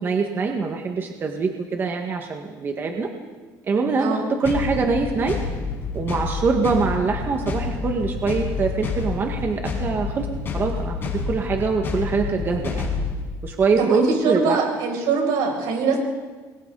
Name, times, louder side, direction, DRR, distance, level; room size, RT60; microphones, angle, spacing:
voice 1, 0.0-3.1 3.6-5.4 5.9-10.3 10.5-12.9 13.4-14.6, right 4 dB, 30° right, 3 dB, 1.7 m, -24 dB
sound 1, 4.4-13.2, left 4 dB, 30° left, 5.7 m, -28 dB
voice 2, 13.8-16.0, right 4 dB, 80° right, 0 dB, 6.8 m, -23 dB
28.5 x 23.0 x 4.1 m, 1.4 s
cardioid pair, 140°, 7 cm